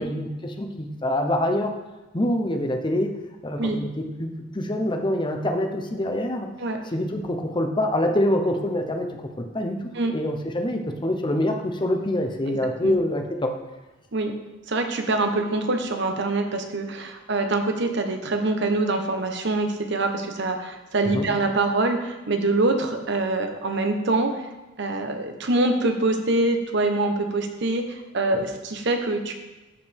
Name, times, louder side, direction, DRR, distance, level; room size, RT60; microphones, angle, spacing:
voice 1, 0.0-1.7 2.1-3.1 3.4-6.5 6.9-9.8 10.1-13.5 21.1-21.3 28.3-28.4, left 1 dB, 25° left, 4 dB, 0.8 m, -25 dB
voice 2, 12.5-12.9 14.1-14.3 14.7-24.4 24.8-29.3, right 2 dB, 60° right, 5 dB, 1.0 m, -24 dB
13.5 x 5.1 x 3.5 m, 1.1 s
head